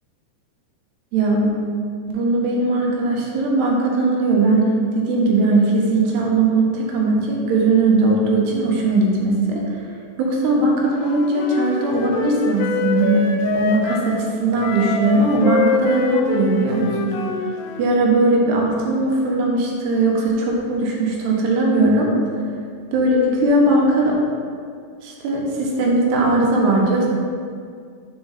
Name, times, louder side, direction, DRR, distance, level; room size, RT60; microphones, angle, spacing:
voice 1, 1.1-1.5 2.1-4.7 4.9-9.6 10.2-13.2 13.5-17.1 17.8-22.1 22.9-24.2 25.0-27.1, right 2 dB, 75° right, -2 dB, 2.9 m, -19 dB
Wind instrument woodwind instrument, 10.9-14.1 14.6-17.9, left 5 dB, 85° left, 2.7 m, -25 dB
6.8 x 4.5 x 5.6 m, 2.2 s
omnidirectional pair, 5.0 m